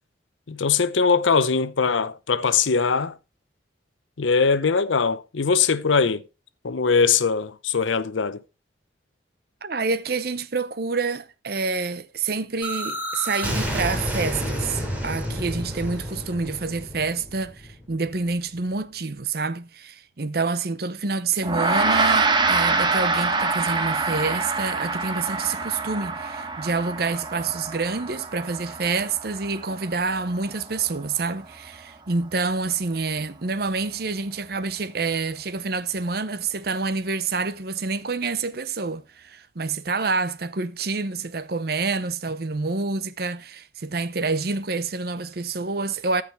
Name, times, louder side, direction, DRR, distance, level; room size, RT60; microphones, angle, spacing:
voice 1, 0.5-3.2 4.2-6.2 6.6-8.4, left 5 dB, 85° left, 0.7 m, -21 dB
voice 2, 9.6-46.2, right 4 dB, 55° right, 0.8 m, -27 dB
sound 1, 12.6-18.3, equal, 10° right, 2.9 m, -30 dB
Gong, 21.4-31.1, right 3 dB, 25° right, 1.2 m, -25 dB
14.5 x 5.0 x 4.5 m
head